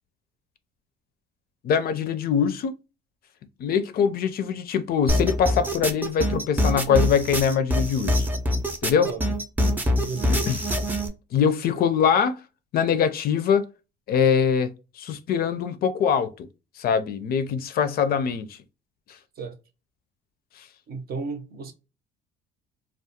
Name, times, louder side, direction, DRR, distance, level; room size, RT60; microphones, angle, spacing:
voice 1, 1.6-2.7 3.6-8.3 8.8-9.1 10.5-10.6 11.3-12.4 12.7-13.6 14.1-16.5 16.8-18.6 20.6-20.7, left 7 dB, 50° left, 0.4 m, -23 dB
sound 1, 5.1-11.1, equal, 10° right, 0.4 m, -24 dB
voice 2, 10.0-10.4 19.4-19.6 20.9-21.7, right 4 dB, 50° right, 0.7 m, -34 dB
2.4 x 2.1 x 2.7 m
cardioid pair, 115°, 20 cm